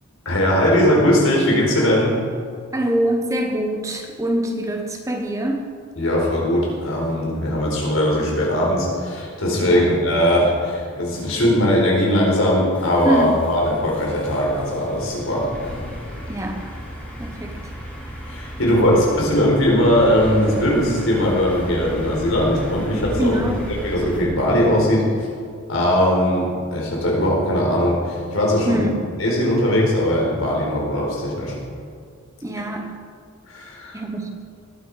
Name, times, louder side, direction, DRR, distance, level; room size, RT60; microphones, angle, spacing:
voice 1, 0.2-2.2 6.0-15.5 18.3-23.4 23.8-25.3 25.7-28.8 29.2-31.5 33.5-34.0, equal, 70° left, -3 dB, 4.3 m, -19 dB
voice 2, 2.7-5.7 9.6-9.9 13.0-13.4 16.3-16.7 17.2-17.7 18.6-19.0 23.2-23.8 28.7-29.0 32.4-33.0 33.9-34.5, right 1 dB, 15° right, 3 dB, 0.9 m, -24 dB
sound 1, 12.7-24.2, equal, 5° left, 4.2 m, -34 dB
19.5 x 9.3 x 4.9 m, 2.1 s
head